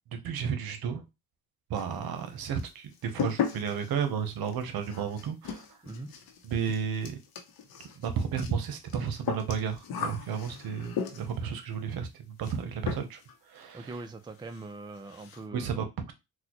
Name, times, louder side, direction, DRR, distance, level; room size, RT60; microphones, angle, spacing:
voice 1, 0.2-1.0 1.7-5.6 6.4-7.2 8.0-12.1 12.4-13.2 13.5-13.9 15.5-16.1, right 7 dB, 70° right, 0.8 m, -32 dB
sound 1, 1.7-2.3 2.6-11.5 12.4-12.6 12.9-13.3 13.6-13.7 14.1-14.2 14.5-14.6 15.0-15.4, left 7 dB, 75° left, 0.8 m, -37 dB
voice 2, 13.7-15.9, right 2 dB, 10° right, 0.4 m, -42 dB
3.9 x 2.2 x 2.9 m
cardioid pair, 75°, 37 cm